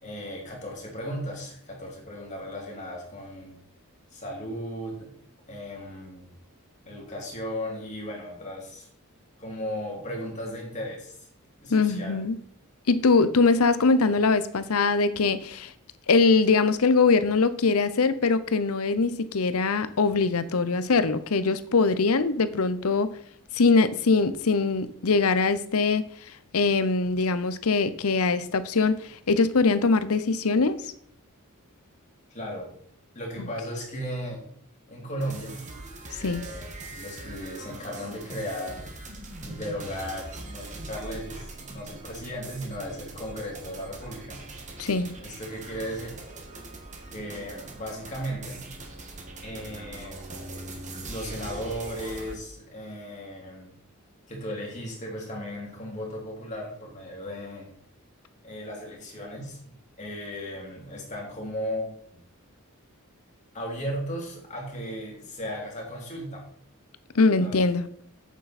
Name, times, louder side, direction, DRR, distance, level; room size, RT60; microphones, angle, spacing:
voice 1, 0.0-3.6 4.1-5.1 5.4-6.3 6.8-8.9 9.4-11.3 11.6-12.2 32.3-32.8 33.1-34.5 34.9-35.6 36.2-38.8 39.4-44.4 45.2-46.2 47.1-48.7 49.4-50.2 51.1-53.7 54.3-57.7 58.4-59.6 60.0-62.2 63.5-66.4 67.4-67.6, equal, 35° left, -2 dB, 3.1 m, -36 dB
voice 2, 11.7-12.4 12.9-15.7 16.1-23.1 23.5-26.0 26.5-30.8 33.4-33.5 36.2-36.4 44.8-45.1 67.1-67.9, left 4 dB, 75° left, 13 dB, 0.7 m, -22 dB
sound 1, 35.2-52.4, right 2 dB, 35° right, 1.6 m, -41 dB
8.4 x 7.5 x 4.2 m, 0.64 s
head